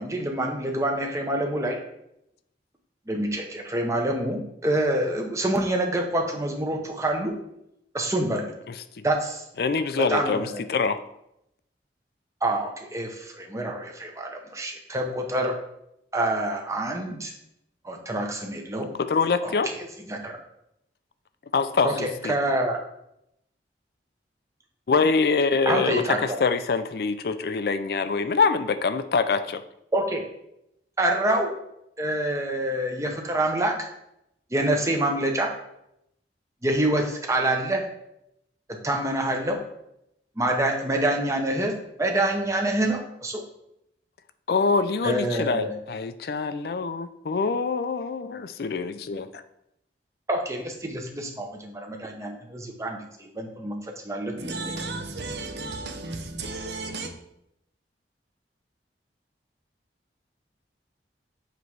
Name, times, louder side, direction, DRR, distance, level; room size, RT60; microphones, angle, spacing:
voice 1, 0.0-1.8 3.1-7.3 7.9-8.5 9.0-9.4 10.0-10.6 12.4-15.5 16.1-17.3 17.8-18.9 19.4-19.5 20.1-20.4 21.8-22.8 25.7-26.2 29.9-30.2 31.0-31.5 32.0-33.9 34.5-35.5 36.6-37.8 38.7-39.6 40.4-41.7 42.0-43.4 45.0-45.7 50.3-54.6, right 1 dB, 15° right, 0.8 m, -26 dB
voice 2, 8.7-9.0 9.6-11.0 19.0-19.7 21.5-21.9 22.2-22.3 24.9-29.6 44.5-49.3, left 4 dB, 55° left, 0.4 m, -25 dB
voice 3, 54.4-57.1, right 3 dB, 70° right, 0.8 m, -34 dB
7.7 x 3.0 x 4.7 m
head